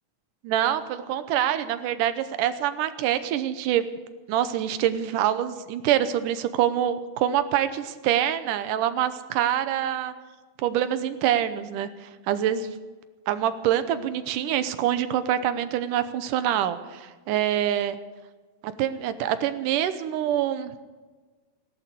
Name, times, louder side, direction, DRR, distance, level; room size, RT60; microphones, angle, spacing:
voice 1, 0.4-3.8 4.3-10.1 10.6-12.8 13.3-18.0 18.6-20.7, right 11 dB, 85° right, 12 dB, 2.4 m, -25 dB
17.0 x 11.5 x 6.8 m, 1.3 s
omnidirectional pair, 3.7 m